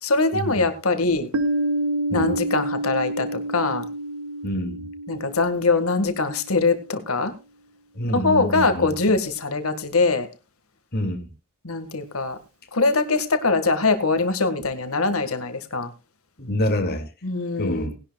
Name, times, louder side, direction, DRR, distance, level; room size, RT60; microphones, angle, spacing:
voice 1, 0.0-1.3 2.1-3.9 5.1-7.3 8.1-10.3 11.6-12.4 12.7-15.9 17.2-18.0, left 3 dB, 85° left, 1.7 m, -22 dB
Piano, 1.3-6.7, right 1 dB, 90° right, 1.5 m, -28 dB
voice 2, 4.4-4.8 8.0-8.9 10.9-11.3 16.4-17.0 17.6-17.9, left 1 dB, 50° left, 2.3 m, -26 dB
19.0 x 11.5 x 2.3 m
head